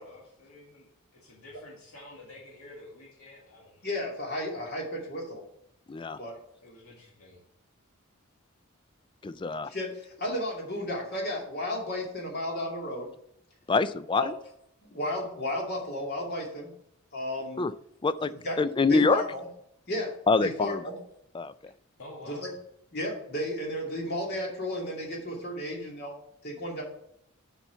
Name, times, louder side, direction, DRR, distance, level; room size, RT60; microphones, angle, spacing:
voice 1, 0.0-3.9 6.6-7.4 22.0-22.5, left 1 dB, 85° left, -4 dB, 2.1 m, -49 dB
voice 2, 3.8-5.4 6.2-6.3 9.7-13.1 14.1-14.3 14.8-16.7 17.1-17.6 18.2-18.6 18.9-19.4 19.9-20.1 20.4-20.9 22.3-22.5 22.9-26.2 26.4-26.8, left 1 dB, 50° left, -1 dB, 2.4 m, -33 dB
voice 3, 5.9-6.2 9.2-9.7 13.7-14.4 17.6-17.7 18.0-18.3 18.6-19.2 20.3-20.8 21.3-21.7, left 4 dB, 20° left, 14 dB, 0.3 m, -25 dB
7.0 x 5.7 x 5.5 m, 0.74 s
head